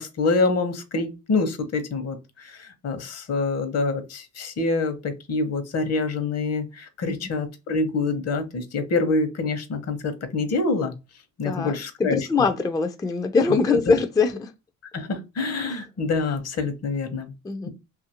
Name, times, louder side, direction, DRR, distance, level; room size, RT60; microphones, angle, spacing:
voice 1, 0.0-10.9 11.4-12.2 13.7-13.8 14.9-17.3, left 3 dB, 55° left, 0.8 m, -26 dB
voice 2, 11.4-14.5 17.4-17.7, left 4 dB, 15° left, 0.3 m, -23 dB
2.8 x 2.5 x 2.7 m
cardioid pair, 90°, 30 cm